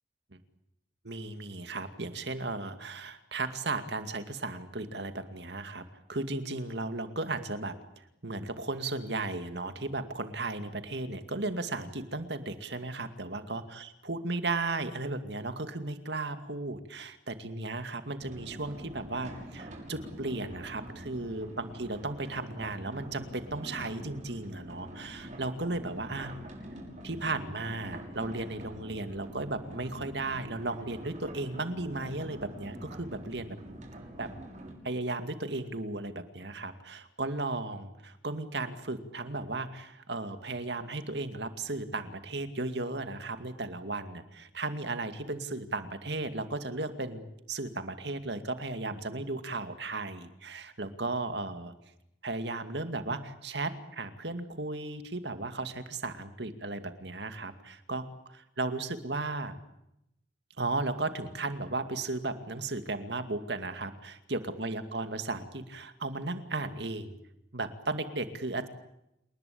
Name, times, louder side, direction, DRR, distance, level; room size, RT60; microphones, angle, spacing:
voice 1, 1.0-7.8 8.2-26.3 27.0-33.6 34.2-34.3 34.8-51.7 52.2-59.6 60.6-67.2 67.5-68.7, right 2 dB, 65° right, 9 dB, 2.4 m, -35 dB
sound 1, 18.2-34.8, right 1 dB, 40° right, 6.3 m, -45 dB
29.0 x 19.5 x 8.6 m, 0.83 s
head